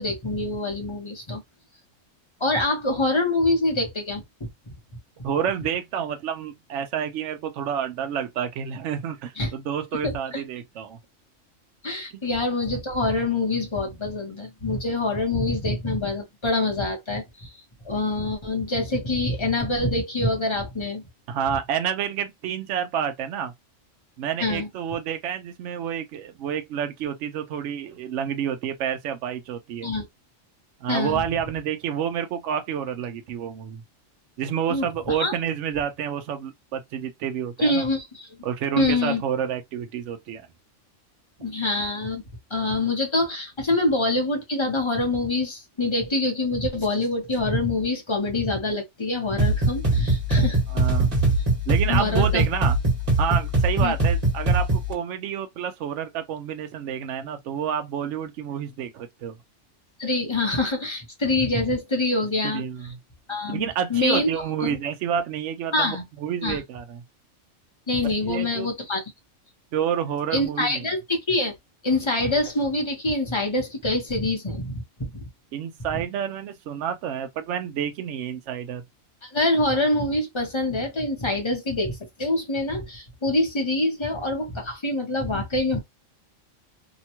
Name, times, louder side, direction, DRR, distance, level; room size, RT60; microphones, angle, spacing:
voice 1, 0.0-1.4 2.4-4.5 9.4-9.5 10.0-10.4 11.8-17.5 17.8-21.0 24.4-24.7 29.8-30.0 30.9-31.2 34.7-35.3 37.6-38.3 38.8-39.2 41.4-42.2 42.5-50.6 51.9-52.4 53.8-53.9 60.0-62.6 63.3-64.3 64.6-64.8 65.7-66.0 66.4-66.6 67.9-69.0 70.3-71.5 71.8-75.3 79.2-85.8, left 2 dB, 25° left, 0.8 m, -25 dB
voice 2, 5.2-11.0 12.1-12.2 21.3-23.5 24.2-29.9 30.8-33.8 34.4-37.8 38.4-40.5 49.9-50.0 50.7-51.1 51.7-52.8 53.2-59.4 62.4-63.0 63.5-67.0 68.0-68.7 69.7-70.9 75.5-78.8, right 8 dB, 75° right, 0.9 m, -29 dB
sound 1, 49.4-54.9, right 2 dB, 30° right, 1.2 m, -22 dB
2.8 x 2.2 x 2.8 m
omnidirectional pair, 1.3 m